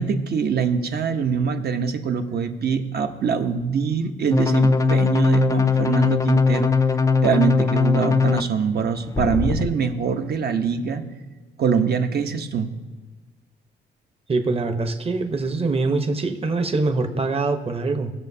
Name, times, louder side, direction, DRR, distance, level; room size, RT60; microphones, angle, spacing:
voice 1, 0.0-6.7 7.2-11.0 11.6-12.7, right 6 dB, 55° right, 6 dB, 1.0 m, -23 dB
sound 1, 4.3-8.4 9.2-9.7, left 4 dB, 15° left, 0.4 m, -20 dB
voice 2, 14.3-18.1, right 3 dB, 30° right, 6 dB, 1.0 m, -23 dB
18.5 x 6.6 x 2.8 m, 1.3 s
cardioid pair, 90°, 20 cm